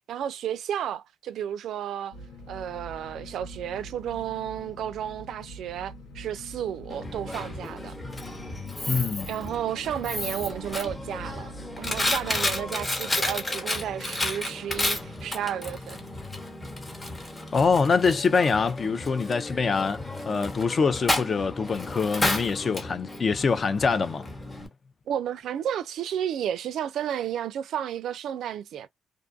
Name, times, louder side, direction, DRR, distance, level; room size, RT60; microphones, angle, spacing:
voice 1, 0.1-2.2 2.5-8.0 9.3-16.0 25.1-28.9, right 10 dB, 75° right, 0.3 m, -32 dB
sound 1, 2.1-12.7, equal, 80° left, 0.9 m, -44 dB
Coin (dropping), 6.9-24.7, left 1 dB, 25° left, 0.9 m, -32 dB
voice 2, 8.9-9.3 17.5-24.3, left 5 dB, 40° left, 0.4 m, -24 dB
2.5 x 2.3 x 2.5 m
cardioid pair, 90°, 0 cm